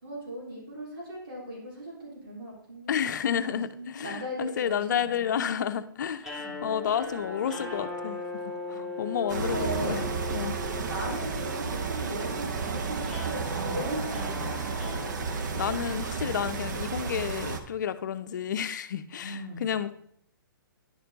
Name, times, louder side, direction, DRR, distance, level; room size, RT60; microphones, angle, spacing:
voice 1, 0.0-2.9 3.4-5.4 6.4-6.8 8.7-8.9 9.2-10.0 10.9-15.2 19.2-19.7, equal, 80° right, -5 dB, 3.3 m, -38 dB
voice 2, 2.9-6.3 6.6-10.0 10.3-10.6 15.5-19.9, left 8 dB, 55° left, 11 dB, 0.5 m, -31 dB
sound 1, 6.2-16.4, left 3 dB, ahead, 1.2 m, -39 dB
sound 2, 9.3-17.6, right 5 dB, 55° right, 0.8 m, -32 dB
10.5 x 4.3 x 4.0 m, 0.67 s
hypercardioid pair, 155°, 12 cm